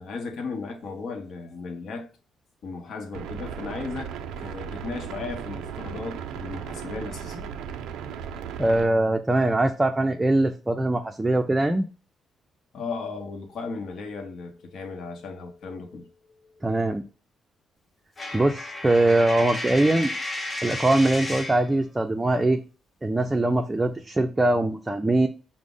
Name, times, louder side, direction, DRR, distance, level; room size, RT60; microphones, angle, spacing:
voice 1, 0.0-2.1 2.6-7.5 12.7-16.1 16.4-16.8, left 4 dB, 65° left, 0.8 m, -36 dB
sound 1, 3.1-8.9, right 8 dB, 85° right, 0.3 m, -36 dB
voice 2, 8.6-11.8 16.6-17.0 18.3-20.1 20.6-22.6 23.0-25.3, right 2 dB, 15° right, 0.4 m, -22 dB
Coin (dropping), 18.2-21.7, left 1 dB, 25° left, 0.7 m, -33 dB
4.8 x 2.0 x 3.8 m
cardioid pair, 90°, 0 cm